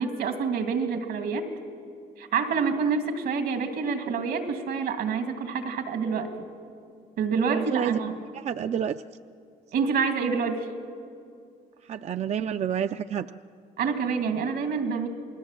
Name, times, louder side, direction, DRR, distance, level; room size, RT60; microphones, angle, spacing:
voice 1, 0.0-1.5 2.2-6.3 7.2-8.2 8.6-8.7 9.7-10.7 13.8-15.1, right 5 dB, 80° right, 6 dB, 2.5 m, -27 dB
voice 2, 7.4-8.0 8.3-9.0 11.9-13.3, right 9 dB, 45° right, 10 dB, 0.5 m, -29 dB
28.0 x 19.5 x 7.5 m, 2.5 s
cardioid pair, 105°, 16 cm